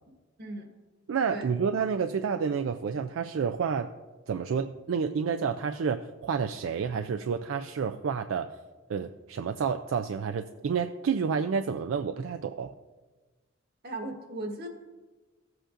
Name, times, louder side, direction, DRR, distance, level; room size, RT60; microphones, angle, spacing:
voice 1, 0.4-0.7 1.3-1.5 13.8-14.7, right 2 dB, 55° right, 3 dB, 1.4 m, -37 dB
voice 2, 1.1-3.9 4.3-8.5 8.9-12.7, right 6 dB, 75° right, 7 dB, 0.4 m, -29 dB
15.5 x 7.8 x 2.5 m, 1.2 s
head